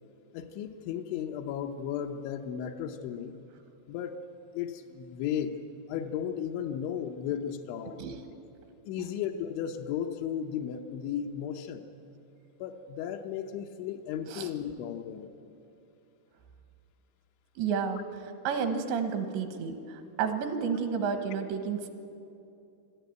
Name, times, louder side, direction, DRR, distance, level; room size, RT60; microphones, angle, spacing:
voice 1, 0.3-3.3 3.9-4.2 4.5-5.6 5.9-8.0 8.8-11.8 12.6-15.3, left 9 dB, 90° left, 3 dB, 3.2 m, -35 dB
voice 2, 17.6-18.0 18.5-21.9, right 6 dB, 80° right, 7 dB, 3.5 m, -31 dB
24.5 x 13.0 x 9.2 m, 2.7 s
omnidirectional pair, 5.1 m